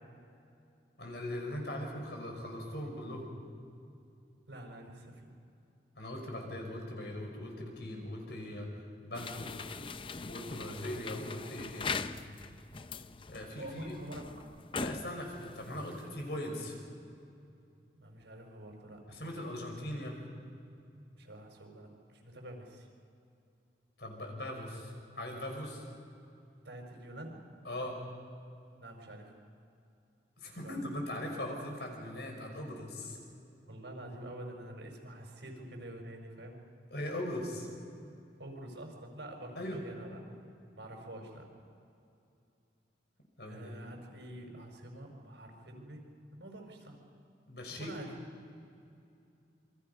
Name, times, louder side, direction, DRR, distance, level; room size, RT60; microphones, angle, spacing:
voice 1, 1.0-3.3 6.0-8.7 9.0-9.7 10.3-12.0 13.3-13.9 14.7-16.7 19.1-20.2 24.0-25.8 27.6-28.0 30.4-33.2 36.9-37.7 39.6-39.9 43.4-43.7 47.5-47.9, left 1 dB, 70° left, 1 dB, 5.6 m, -40 dB
voice 2, 4.5-5.3 13.5-14.5 18.0-19.3 21.2-22.9 26.6-27.4 28.8-29.3 30.4-30.8 33.7-36.6 38.4-40.2 40.7-41.5 43.4-46.0 46.3-47.0 47.8-48.1, right 1 dB, 90° right, 2 dB, 5.0 m, -47 dB
sound 1, 9.1-16.4, left 4 dB, 30° left, 0.5 m, -41 dB
28.0 x 24.0 x 5.5 m, 2.6 s
head